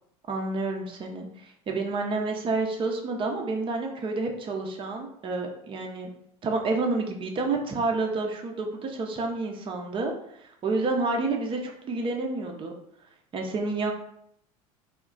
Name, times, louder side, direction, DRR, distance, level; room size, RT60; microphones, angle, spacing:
voice 1, 0.3-6.1 6.4-10.1 10.4-12.7 13.3-13.9, right 3 dB, 25° right, 2 dB, 0.5 m, -29 dB
2.3 x 2.1 x 3.7 m, 0.72 s
hypercardioid pair, 80°, 20 cm